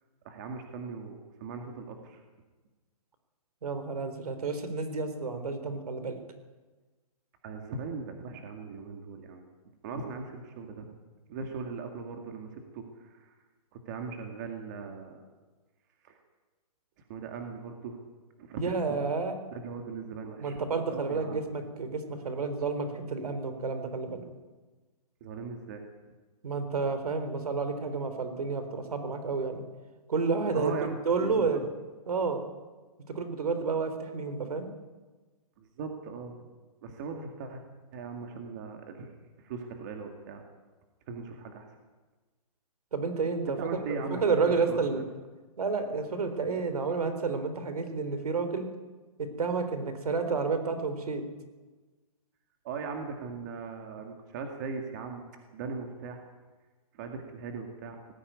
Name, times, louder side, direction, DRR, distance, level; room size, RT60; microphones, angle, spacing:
voice 1, 0.2-2.2 7.4-9.5 9.8-11.0 11.3-13.3 13.9-15.3 16.0-16.2 17.1-18.0 18.4-18.6 18.9-19.0 19.5-20.6 20.9-21.4 25.2-25.8 30.5-31.6 35.6-36.4 36.8-37.6 37.9-39.1 39.4-40.4 41.1-41.7 43.6-44.4 44.7-45.0 52.6-56.3 56.9-58.0, right 4 dB, 30° right, 4 dB, 2.1 m, -39 dB
voice 2, 3.6-6.2 18.6-19.3 20.4-24.2 26.4-29.6 30.1-31.6 32.1-32.4 33.1-34.7 42.9-43.8 44.1-45.0 45.6-48.7 49.2-51.2, right 4 dB, 75° right, 9 dB, 3.9 m, -30 dB
19.0 x 15.0 x 9.4 m, 1.3 s
hypercardioid pair, 170°, 20 cm